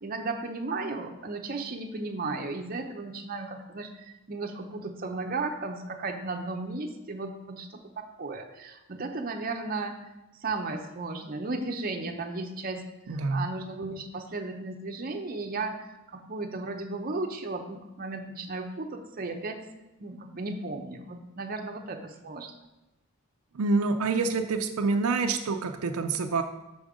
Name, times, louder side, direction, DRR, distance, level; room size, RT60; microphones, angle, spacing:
voice 1, 0.0-10.0 10.4-12.8 13.1-19.6 20.0-22.5, right 3 dB, 40° right, 4 dB, 0.7 m, -35 dB
voice 2, 13.1-13.6 23.5-26.4, right 3 dB, 80° right, 6 dB, 0.5 m, -27 dB
6.2 x 5.1 x 4.9 m, 0.98 s
head